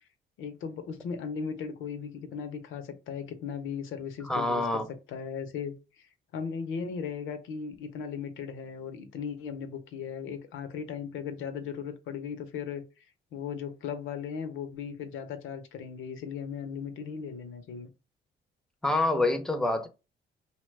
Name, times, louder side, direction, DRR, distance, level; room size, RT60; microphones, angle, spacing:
voice 1, 0.4-13.1 13.3-17.9, left 6 dB, 80° left, 0.6 m, -37 dB
voice 2, 4.2-4.9 18.8-19.9, left 2 dB, 5° left, 0.5 m, -26 dB
2.8 x 2.2 x 3.2 m
cardioid pair, 90°, 20 cm